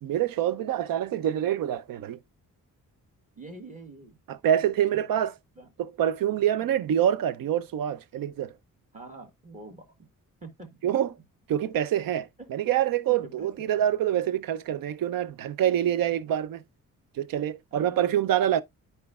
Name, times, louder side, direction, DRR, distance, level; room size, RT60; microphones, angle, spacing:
voice 1, 0.0-2.2 4.3-5.3 5.8-8.5 10.8-11.1 11.5-16.6 17.2-18.6, right 10 dB, 85° right, 0.6 m, -26 dB
voice 2, 3.3-4.2 4.9-5.2 5.5-5.7 6.3-6.8 8.9-9.9 10.4-10.8 11.6-11.7 12.4-12.5 13.1-13.9 16.1-16.3 17.7-18.3, right 2 dB, 25° right, 1.4 m, -46 dB
11.5 x 4.5 x 2.3 m
wide cardioid pair, 170°, 33 cm